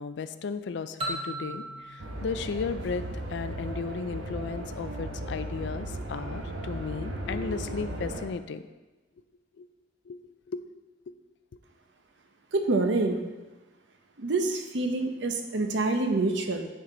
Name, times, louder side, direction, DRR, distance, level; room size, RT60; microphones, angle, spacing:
voice 1, 0.0-3.0 3.3-8.6 9.6-9.7 10.1-10.2 10.5-10.6, left 5 dB, 65° left, 12 dB, 0.4 m, -35 dB
sound 1, 1.0-3.7, right 1 dB, 30° right, 1.0 m, -38 dB
sound 2, 2.0-8.2, right 1 dB, 85° right, 1.2 m, -36 dB
voice 2, 12.5-13.2 14.2-16.6, right 2 dB, 70° right, 5 dB, 0.8 m, -26 dB
9.5 x 4.6 x 3.9 m, 1.2 s
head